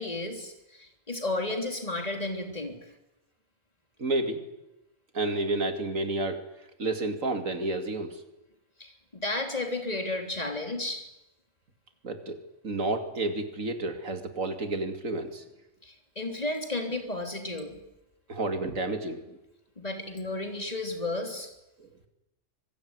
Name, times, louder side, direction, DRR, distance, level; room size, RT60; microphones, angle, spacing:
voice 1, 0.0-2.8 8.8-11.1 15.8-17.8 19.8-21.5, left 2 dB, 30° left, 5 dB, 3.5 m, -33 dB
voice 2, 4.0-4.4 5.1-6.4 6.8-8.2 12.0-15.4 18.3-19.4 21.8-22.1, right 2 dB, 80° right, 7 dB, 2.9 m, -30 dB
24.5 x 21.0 x 9.7 m, 0.94 s
omnidirectional pair, 1.4 m